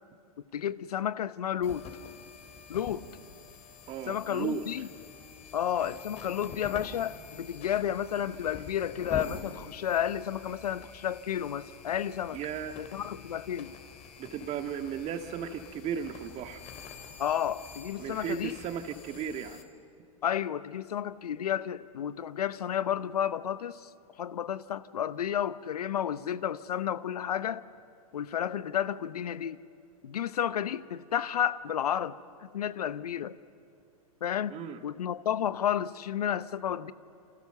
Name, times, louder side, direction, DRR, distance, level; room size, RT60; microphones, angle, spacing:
voice 1, 0.5-1.8 2.7-3.1 4.1-4.9 5.5-12.4 12.8-13.7 17.2-18.5 20.2-23.9 24.2-27.6 28.1-29.6 30.0-32.2 32.4-33.4 34.2-34.6 34.8-36.9, left 9 dB, 80° left, 0.9 m, -31 dB
sound 1, 1.6-19.6, left 6 dB, 35° left, 3.0 m, -47 dB
voice 2, 3.9-4.7 12.3-12.8 14.2-16.6 18.0-19.6 34.5-34.8, right 8 dB, 35° right, 1.9 m, -35 dB
28.5 x 26.5 x 6.8 m
hypercardioid pair, 110°, 20 cm